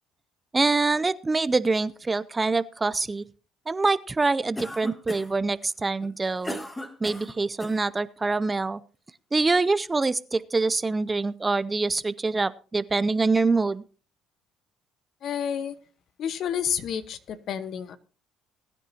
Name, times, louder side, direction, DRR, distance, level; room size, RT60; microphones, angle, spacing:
voice 1, 0.5-3.2 3.7-6.6 7.0-8.8 9.3-13.8, right 3 dB, 20° right, 17 dB, 0.5 m, -25 dB
Cough, 4.6-5.4 6.0-7.8, equal, 10° left, 1.9 m, -37 dB
voice 2, 15.2-15.7 16.2-18.0, left 8 dB, 60° left, 12 dB, 1.1 m, -30 dB
20.5 x 9.9 x 2.8 m, 0.37 s
supercardioid pair, 80°, 0 cm